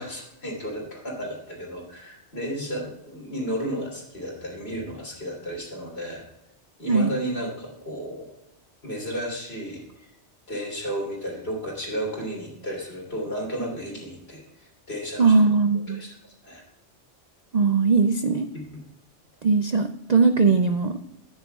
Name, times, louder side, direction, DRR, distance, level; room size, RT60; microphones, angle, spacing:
voice 1, 0.0-6.2 6.8-8.3 8.8-10.1 10.5-15.4 15.9-16.6 18.5-18.6, equal, 60° left, -1 dB, 3.4 m, -33 dB
voice 2, 15.2-16.0 17.5-18.5 19.4-21.0, right 4 dB, 55° right, 8 dB, 0.4 m, -20 dB
13.5 x 9.6 x 2.3 m, 0.85 s
omnidirectional pair, 1.2 m